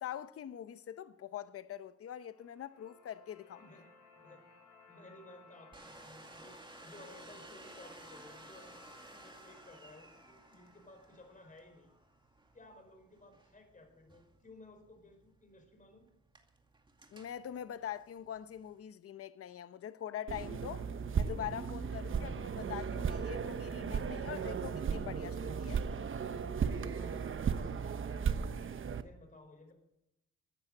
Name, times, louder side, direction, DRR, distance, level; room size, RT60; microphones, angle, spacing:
voice 1, 0.0-3.6 17.1-20.9 21.1-25.8, left 10 dB, 50° left, 0.8 m, -43 dB
sound 1, 2.1-12.2, left 4 dB, 90° left, 7.2 m, -61 dB
voice 2, 4.9-11.9 12.5-16.1 24.5-25.4 26.9-28.4 28.9-29.7, left 2 dB, 25° left, 4.8 m, -57 dB
Domestic sounds home sounds, 5.7-18.8, right 2 dB, 15° right, 2.3 m, -57 dB
sound 2, 20.3-29.0, right 6 dB, 40° right, 1.0 m, -36 dB
15.0 x 9.6 x 7.5 m
cardioid pair, 90°, 30 cm